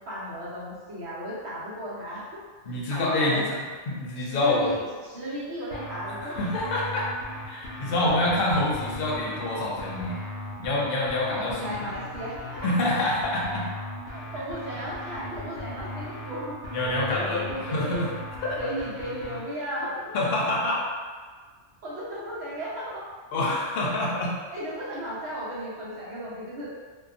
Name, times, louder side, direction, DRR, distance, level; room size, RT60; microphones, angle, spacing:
voice 1, 0.0-2.4 2.7-3.5 4.2-6.4 8.0-8.2 11.3-12.7 14.1-16.6 17.1-18.1 18.6-20.2 21.8-23.0 24.5-26.7, equal, 65° right, -8 dB, 1.1 m, -35 dB
voice 2, 2.6-3.6 3.9-4.8 6.2-7.1 7.4-10.2 10.6-11.8 12.6-13.6 16.7-18.1 18.4-18.6 20.1-20.8 23.3-24.3, left 2 dB, 60° left, -4 dB, 0.7 m, -26 dB
sound 1, 5.7-19.4, left 1 dB, 85° left, 0.9 m, -38 dB
2.7 x 2.2 x 2.4 m, 1.5 s
omnidirectional pair, 1.2 m